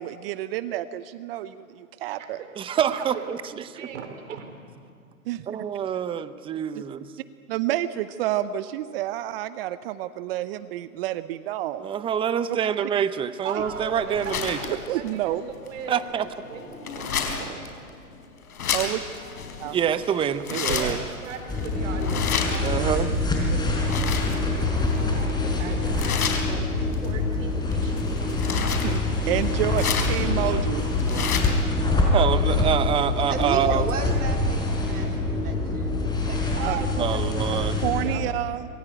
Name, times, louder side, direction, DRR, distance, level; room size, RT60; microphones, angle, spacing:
voice 1, 0.0-2.4 5.3-5.6 7.5-11.9 12.5-12.6 14.9-15.5 18.7-19.0 19.6-19.8 20.5-21.0 28.6-29.0 29.3-30.9 36.6-36.8 37.8-38.7, right 13 dB, 40° right, 14 dB, 0.8 m, -29 dB
voice 2, 1.9-3.3 3.6-4.6 13.4-15.3 15.6-17.7 20.6-23.1 23.5-28.1 36.6-37.3 37.9-38.2, right 6 dB, 55° right, 6 dB, 4.3 m, -39 dB
voice 3, 2.6-3.4 3.7-3.9 5.5-7.1 11.8-14.8 15.9-16.3 19.7-21.0 22.6-23.1 30.3-30.6 31.1-31.6 32.1-33.9 37.0-37.8, right 9 dB, 10° right, 13 dB, 0.7 m, -26 dB
sound 1, 13.6-31.7, left 6 dB, 75° left, 4.6 m, -32 dB
sound 2, 21.5-38.1, left 2 dB, 10° left, 4.9 m, -25 dB
voice 4, 33.3-36.8, right 5 dB, 85° right, 2 dB, 3.7 m, -34 dB
26.5 x 22.0 x 9.1 m, 2.2 s
hypercardioid pair, 135°, 44 cm